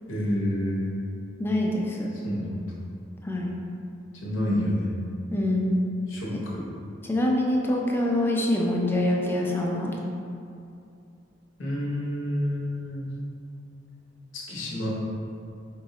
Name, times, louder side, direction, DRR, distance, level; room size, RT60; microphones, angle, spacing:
voice 1, 0.1-0.9 2.2-2.7 4.1-5.0 6.1-6.7 11.6-13.1 14.3-14.9, left 1 dB, 75° left, -5 dB, 0.8 m, -29 dB
voice 2, 1.4-2.1 3.2-3.5 5.3-5.8 6.3-6.4 7.1-9.9, left 1 dB, 10° left, -2 dB, 0.4 m, -25 dB
4.7 x 2.1 x 3.6 m, 2.5 s
head